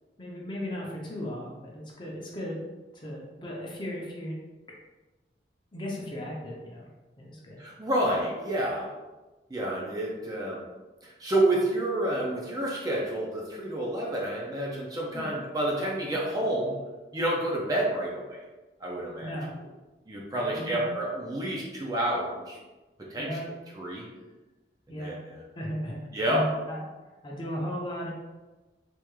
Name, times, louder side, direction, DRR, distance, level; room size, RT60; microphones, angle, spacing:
voice 1, 0.2-2.7 2.9-4.3 5.7-6.9 7.2-7.6 15.1-15.4 19.2-19.5 20.3-20.9 23.2-23.5 24.9-25.2 25.5-26.0 26.3-26.8 27.2-28.1, equal, 25° left, -3 dB, 0.6 m, -36 dB
voice 2, 7.6-8.9 9.5-10.6 11.0-16.8 17.1-18.4 18.8-19.3 20.1-22.6 23.0-23.4 23.8-24.1 24.9-25.4 26.1-26.5, right 1 dB, 20° right, -3 dB, 0.5 m, -29 dB
3.5 x 2.5 x 3.0 m, 1.2 s
head